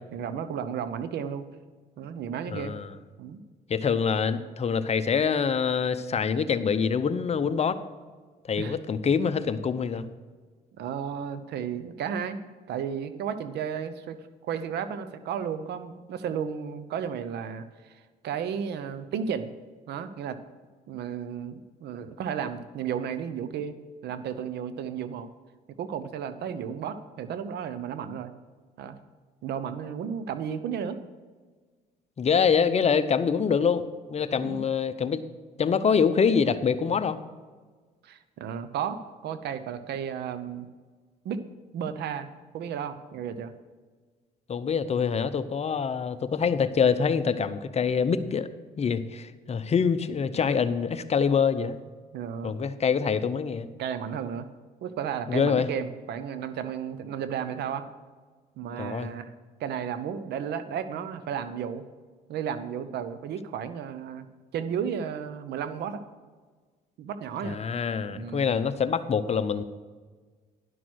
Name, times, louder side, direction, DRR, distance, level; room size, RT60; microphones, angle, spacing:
voice 1, 0.1-1.5 2.0-2.8 3.2-3.4 8.6-8.8 10.8-12.4 12.7-19.5 19.9-20.4 20.9-23.8 24.0-25.3 25.8-28.3 28.8-29.0 29.4-31.0 34.4-34.6 38.0-40.7 41.2-41.4 41.7-42.3 42.5-43.5 52.1-52.5 53.8-54.5 54.8-57.8 58.6-59.3 59.6-61.8 62.3-64.3 64.5-66.0 67.0-67.6 68.1-68.5, right 8 dB, 70° right, 12 dB, 0.8 m, -33 dB
voice 2, 2.5-2.9 3.7-7.8 8.5-10.1 32.2-33.8 34.1-35.2 35.6-37.2 44.5-48.5 48.8-51.8 52.4-53.7 55.3-55.7 58.8-59.1 67.4-69.6, left 6 dB, 40° left, 12 dB, 0.7 m, -25 dB
11.0 x 6.1 x 6.3 m, 1.4 s
supercardioid pair, 75°, 18 cm